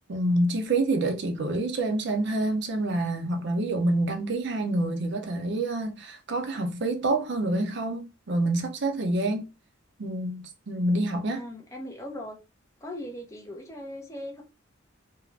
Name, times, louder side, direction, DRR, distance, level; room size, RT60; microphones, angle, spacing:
voice 1, 0.1-9.5 10.0-11.4, right 2 dB, 60° right, 0.6 m, -27 dB
voice 2, 11.3-12.4 12.8-14.4, left 1 dB, 15° left, 0.6 m, -39 dB
2.4 x 2.0 x 3.1 m
head